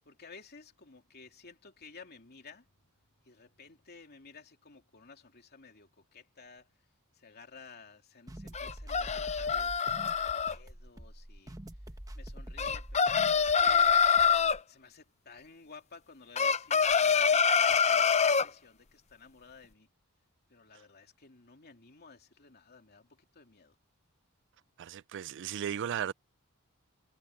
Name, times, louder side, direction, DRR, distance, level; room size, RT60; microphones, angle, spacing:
voice 1, 0.0-2.7 3.2-6.7 7.1-11.6 12.1-13.9 14.7-19.9 20.5-23.8, left 4 dB, 45° left, 3.0 m, -54 dB
sound 1, 8.3-14.6, right 1 dB, 15° right, 1.2 m, -46 dB
sound 2, 8.5-10.5 12.6-14.6 16.4-18.5, left 6 dB, 30° left, 0.6 m, -25 dB
voice 2, 24.8-26.1, right 9 dB, 55° right, 0.4 m, -35 dB
head